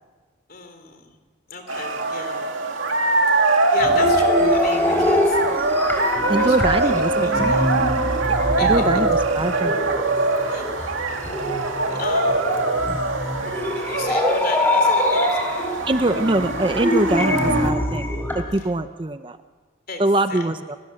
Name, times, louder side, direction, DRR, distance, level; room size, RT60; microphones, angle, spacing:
voice 1, 0.5-1.1 1.5-2.5 3.3-5.4 6.2-7.9 8.6-9.1 9.5-9.6 10.5-11.0 11.6-12.5 13.8-15.6 18.6-18.7 19.9-20.0 20.3-20.5, left 3 dB, 45° left, 6 dB, 3.7 m, -34 dB
sound 1, 1.7-17.7, right 2 dB, 70° right, 2.3 m, -23 dB
sound 2, 3.8-18.4, left 1 dB, 10° left, 3.7 m, -24 dB
voice 2, 6.3-7.6 8.3-9.7 12.9-13.0 15.9-18.0 18.3-19.4 20.0-20.8, right 2 dB, 25° right, 10 dB, 0.6 m, -23 dB
28.5 x 19.0 x 7.7 m, 1.4 s
head